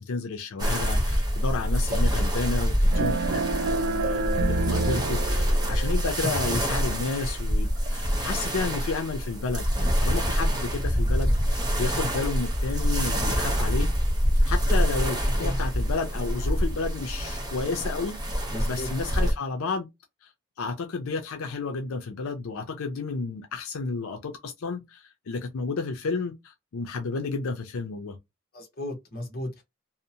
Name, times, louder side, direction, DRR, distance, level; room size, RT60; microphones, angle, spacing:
voice 1, 0.0-13.9 14.4-19.9 20.2-20.3 20.6-28.2, left 4 dB, 85° left, 0.5 m, -32 dB
sound 1, 0.6-19.3, equal, 20° right, 0.7 m, -26 dB
sound 2, 2.9-6.2, right 3 dB, 85° right, 0.4 m, -28 dB
voice 2, 18.5-18.9 28.5-29.6, left 1 dB, 45° left, 0.9 m, -35 dB
2.7 x 2.0 x 2.7 m
head